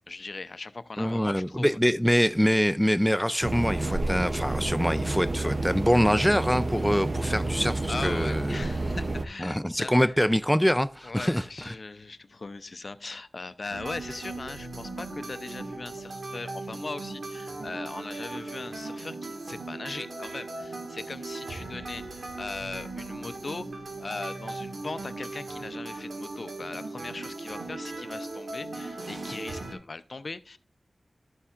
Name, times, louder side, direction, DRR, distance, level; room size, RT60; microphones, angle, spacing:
voice 1, 0.1-1.8 7.9-10.2 11.0-30.6, left 3 dB, 55° left, 0.5 m, -39 dB
voice 2, 1.0-8.5 9.4-11.4, equal, ahead, 0.4 m, -24 dB
sound 1, 3.4-9.2, right 2 dB, 50° right, 0.6 m, -29 dB
sound 2, 13.7-29.7, right 2 dB, 80° right, 1.8 m, -38 dB
12.5 x 7.0 x 2.4 m
wide cardioid pair, 85°, 0 cm